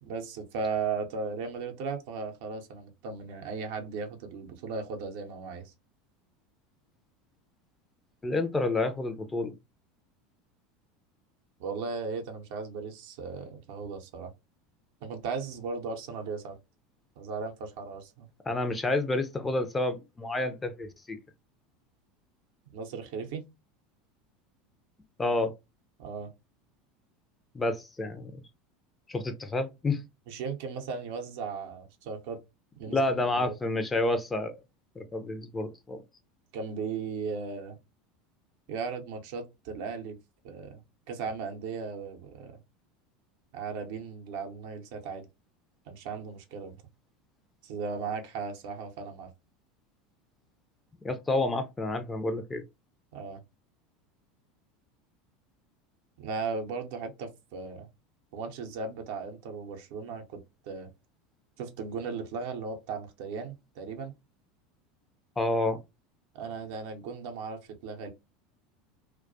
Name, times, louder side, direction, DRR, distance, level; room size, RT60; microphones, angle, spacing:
voice 1, 0.0-5.7 11.6-14.3 15.0-16.6 17.2-18.3 22.7-23.4 26.0-26.3 30.3-32.4 32.7-33.0 33.3-33.5 36.5-37.8 38.7-40.2 40.4-40.8 41.1-42.6 43.5-45.3 45.9-46.8 47.6-49.3 53.1-53.4 56.2-57.9 58.3-60.9 61.6-64.1 66.3-68.1, right 5 dB, 65° right, 0.6 m, -36 dB
voice 2, 8.2-9.5 18.5-21.2 25.2-25.5 27.5-28.4 29.1-30.0 32.9-34.6 35.0-36.0 51.0-52.6 65.4-65.8, left 2 dB, 15° left, 0.4 m, -29 dB
2.2 x 2.2 x 2.5 m
hypercardioid pair, 80°, 0 cm